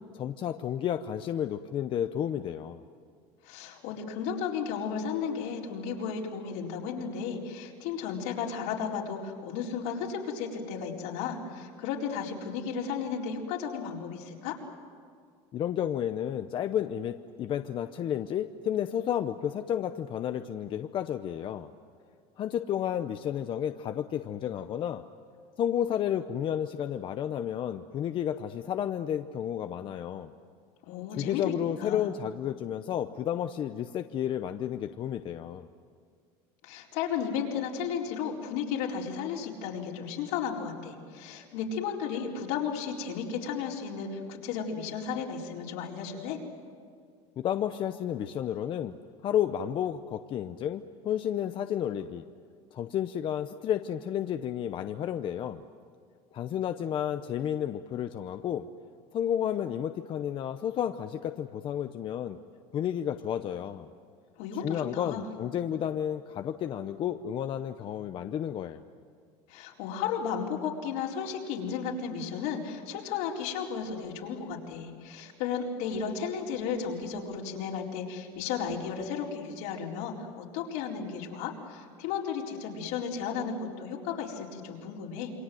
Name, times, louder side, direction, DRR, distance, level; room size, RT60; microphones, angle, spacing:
voice 1, 0.1-2.8 15.5-21.7 22.4-25.0 25.6-30.3 31.2-35.7 47.4-48.9 49.2-52.2 52.7-55.6 56.3-58.6 59.1-62.4 62.7-63.9 64.6-68.8, left 10 dB, 35° left, 8 dB, 0.7 m, -31 dB
voice 2, 3.4-14.6 30.8-31.5 31.8-32.1 36.6-46.4 64.4-65.3 69.5-85.3, left 6 dB, 75° left, -1 dB, 4.4 m, -34 dB
28.0 x 23.5 x 7.8 m, 2.1 s
cardioid pair, 140°, 14 cm